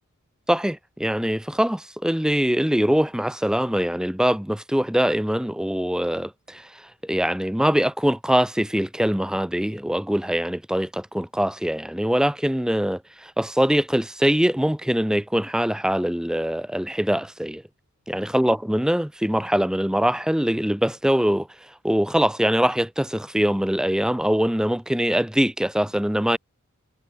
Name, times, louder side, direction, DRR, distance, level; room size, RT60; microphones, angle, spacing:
voice 1, 0.5-17.6 18.1-21.5 21.8-26.4, equal, 5° right, 0.6 m, -23 dB
head